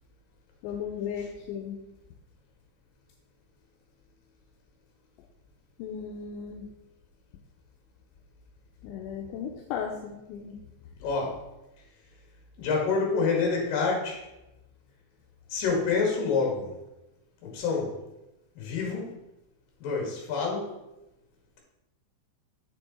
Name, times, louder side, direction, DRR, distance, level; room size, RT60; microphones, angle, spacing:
voice 1, 0.6-1.8 5.8-6.7 8.8-10.6, left 7 dB, 80° left, 2 dB, 2.7 m, -36 dB
voice 2, 11.0-11.5 11.8-11.9 12.6-14.3 15.5-16.8 17.4-18.0 18.5-19.2 19.8-20.7, left 4 dB, 55° left, 0 dB, 3.0 m, -27 dB
6.9 x 6.8 x 4.2 m, 0.92 s
omnidirectional pair, 5.8 m